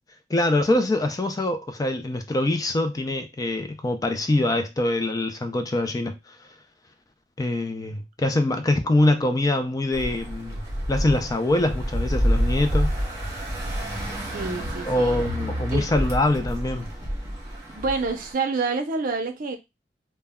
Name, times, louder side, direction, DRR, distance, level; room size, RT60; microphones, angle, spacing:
voice 1, 0.3-6.4 7.4-10.6 10.9-12.9 14.8-16.9, left 2 dB, 20° left, 0.3 m, -24 dB
sound 1, 9.9-18.3, equal, 20° right, 0.8 m, -28 dB
voice 2, 14.3-15.2 15.7-15.9 17.7-19.6, right 4 dB, 50° right, 0.5 m, -28 dB
2.1 x 2.1 x 3.4 m
head